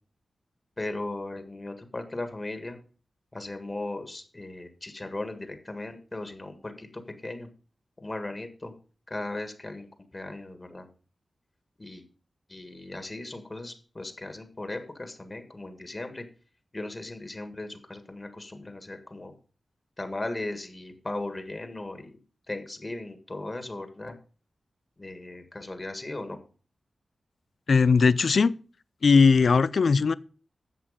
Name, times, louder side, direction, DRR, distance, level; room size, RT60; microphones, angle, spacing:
voice 1, 0.8-2.8 3.3-7.5 8.0-8.7 9.1-10.9 11.8-12.0 12.5-16.2 16.7-19.3 20.0-22.1 22.5-24.1 25.0-26.4, left 2 dB, 25° left, 1.7 m, -37 dB
voice 2, 27.7-28.5 29.0-30.1, left 5 dB, 60° left, 0.5 m, -19 dB
11.5 x 7.8 x 5.1 m
wide cardioid pair, 140°, 0 cm